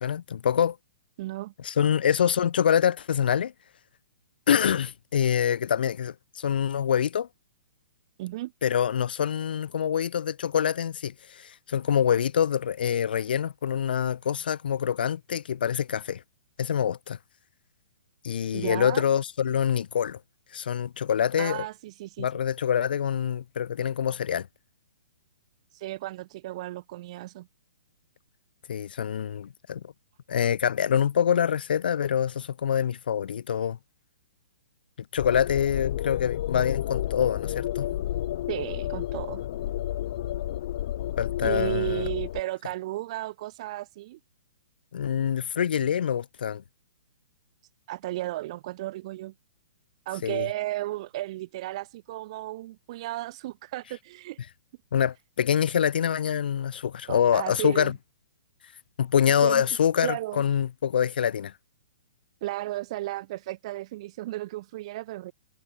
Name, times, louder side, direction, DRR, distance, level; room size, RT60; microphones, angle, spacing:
voice 1, 0.0-0.8 1.6-3.5 4.5-7.3 8.6-16.2 16.6-17.2 18.2-20.2 20.5-21.6 22.2-24.5 28.7-29.8 30.3-33.8 35.1-37.9 41.2-42.1 44.9-46.6 50.2-50.5 54.9-57.9 59.0-61.5, left 8 dB, 70° left, 0.7 m, -25 dB
voice 2, 1.2-1.5 8.2-8.5 18.5-19.0 21.4-22.3 25.7-27.5 38.5-39.4 41.4-44.2 47.9-49.3 50.1-54.4 57.1-57.9 59.4-59.7 60.0-60.4 62.4-65.3, right 16 dB, 35° right, 0.6 m, -34 dB
sound 1, 35.2-42.4, left 12 dB, 45° left, 0.3 m, -31 dB
hypercardioid pair, 165°, 5 cm